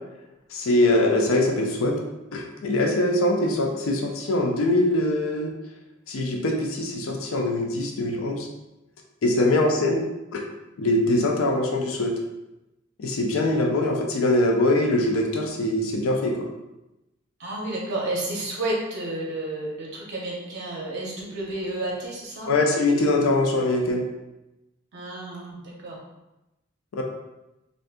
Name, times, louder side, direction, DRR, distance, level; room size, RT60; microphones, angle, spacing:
voice 1, 0.5-1.9 2.3-5.5 6.1-8.5 9.2-10.0 10.3-10.4 10.8-12.1 13.0-16.5 22.5-24.0 26.9-27.0, left 1 dB, 80° left, 1 dB, 0.4 m, -22 dB
voice 2, 17.4-22.5 24.9-26.0, right 1 dB, 60° right, -3 dB, 0.6 m, -31 dB
2.5 x 2.5 x 3.4 m, 0.97 s
head